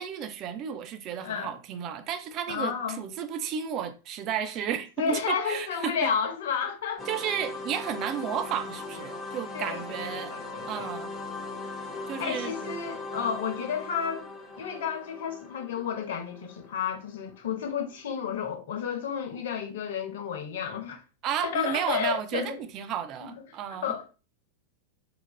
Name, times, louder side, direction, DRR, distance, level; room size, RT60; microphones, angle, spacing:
voice 1, 0.0-6.1 7.1-10.4 10.6-11.1 12.1-12.5 21.2-24.0, right 8 dB, 35° right, 0.4 m, -33 dB
voice 2, 1.2-1.5 2.5-3.0 5.0-7.1 9.5-9.8 10.1-10.9 12.2-14.3 14.6-21.0 21.4-22.6 23.2-23.3 23.8-24.1, left 7 dB, 55° left, 0.7 m, -31 dB
sound 1, 7.0-17.6, left 3 dB, 5° left, 0.7 m, -39 dB
3.2 x 2.4 x 2.2 m
figure-of-eight pair, 90°, 0 cm